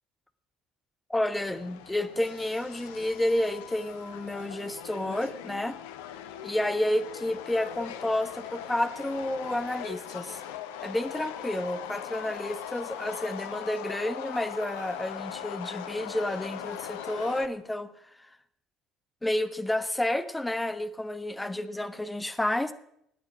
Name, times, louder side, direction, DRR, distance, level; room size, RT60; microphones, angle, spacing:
voice 1, 1.1-5.8 6.4-10.4 10.8-17.9 18.2-18.3 19.2-22.7, left 1 dB, 10° left, 11 dB, 1.2 m, -30 dB
Subway metro underground, 1.3-17.5, left 10 dB, 70° left, 0.9 m, -40 dB
18.0 x 9.3 x 6.3 m, 0.76 s
figure-of-eight pair, 55°, 0 cm